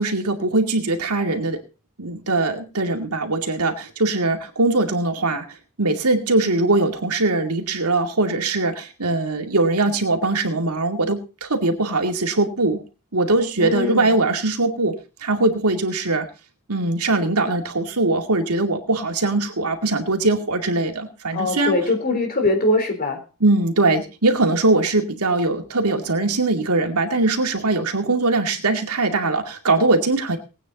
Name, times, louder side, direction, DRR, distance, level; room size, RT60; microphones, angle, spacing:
voice 1, 0.0-1.6 2.0-5.4 5.8-12.8 13.1-14.9 15.2-16.3 16.7-21.8 23.4-30.4, right 2 dB, 85° right, 4 dB, 2.3 m, -21 dB
voice 2, 13.6-14.2 21.3-23.2, left 2 dB, 40° left, 4 dB, 3.9 m, -22 dB
19.5 x 9.1 x 4.1 m, 0.32 s
head